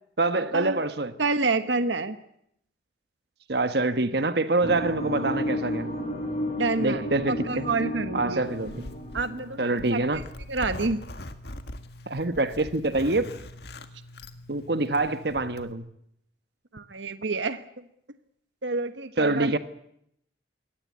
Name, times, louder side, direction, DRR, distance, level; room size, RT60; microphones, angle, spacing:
voice 1, 0.2-1.1 3.5-5.9 6.8-7.6 8.1-8.9 9.6-10.2 12.1-13.3 14.5-15.8 19.2-19.6, right 2 dB, 60° right, 10 dB, 1.3 m, -25 dB
voice 2, 1.2-2.2 6.6-8.4 9.1-10.2 10.5-11.0 16.7-17.6 18.6-19.5, right 3 dB, 80° right, 10 dB, 1.3 m, -28 dB
sound 1, 4.6-9.8, equal, 35° left, 6.9 m, -32 dB
Zipper (clothing), 8.4-15.7, left 1 dB, 60° left, 1.9 m, -42 dB
22.5 x 18.0 x 9.6 m, 0.73 s
head